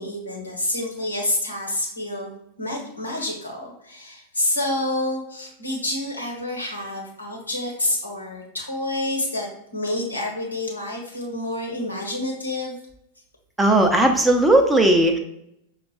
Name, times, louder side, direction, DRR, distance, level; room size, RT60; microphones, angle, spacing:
voice 1, 0.0-2.3 2.6-12.8, left 1 dB, 80° left, -1 dB, 1.1 m, -28 dB
voice 2, 13.6-15.2, right 1 dB, 5° right, 3 dB, 0.6 m, -17 dB
6.0 x 2.4 x 2.4 m, 0.77 s
figure-of-eight pair, 90°, 0 cm